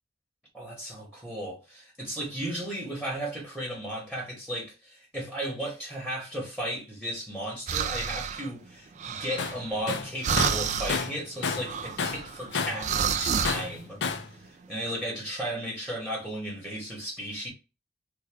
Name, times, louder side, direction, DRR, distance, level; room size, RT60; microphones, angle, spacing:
voice 1, 0.5-14.0 14.3-17.5, right 1 dB, 5° right, 1.0 m, -35 dB
sound 1, 7.7-8.5 9.0-9.9 10.2-11.1 11.6-13.6, right 7 dB, 45° right, 0.3 m, -29 dB
Tools, 9.4-9.6 9.9-11.7 12.0-12.9 13.5-14.3, left 5 dB, 90° left, 0.4 m, -31 dB
3.5 x 2.2 x 3.3 m
head